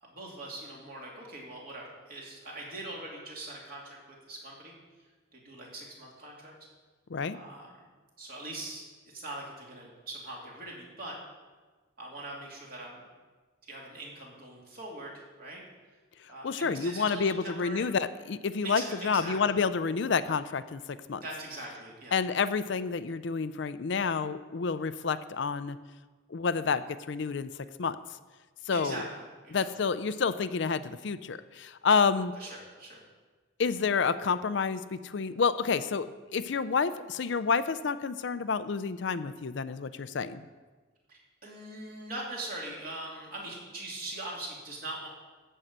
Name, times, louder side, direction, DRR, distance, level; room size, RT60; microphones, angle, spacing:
voice 1, 0.1-4.8 5.3-6.5 7.3-7.7 8.2-8.9 9.1-11.2 12.0-13.1 13.6-15.6 16.3-17.9 18.6-19.4 21.1-22.2 28.7-29.7 32.4-33.0 41.1-45.1, right 2 dB, 45° right, -3 dB, 2.8 m, -42 dB
voice 2, 16.2-21.2 22.1-25.8 26.3-27.5 27.8-28.0 28.7-29.0 29.5-32.3 33.6-40.4, left 5 dB, 60° left, 12 dB, 0.5 m, -29 dB
13.5 x 5.5 x 7.9 m, 1.4 s
head